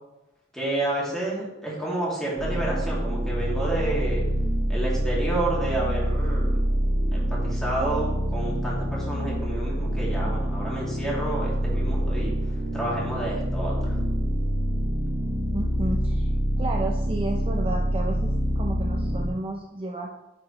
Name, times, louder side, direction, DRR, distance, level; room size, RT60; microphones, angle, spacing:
voice 1, 0.5-4.2 4.7-6.5 7.1-12.3 12.7-14.0, right 2 dB, 5° left, -6 dB, 2.4 m, -30 dB
sound 1, 2.4-19.3, equal, 85° right, 1.5 m, -26 dB
voice 2, 15.5-20.2, right 2 dB, 30° right, 1 dB, 0.5 m, -32 dB
10.0 x 4.8 x 3.1 m, 0.95 s
head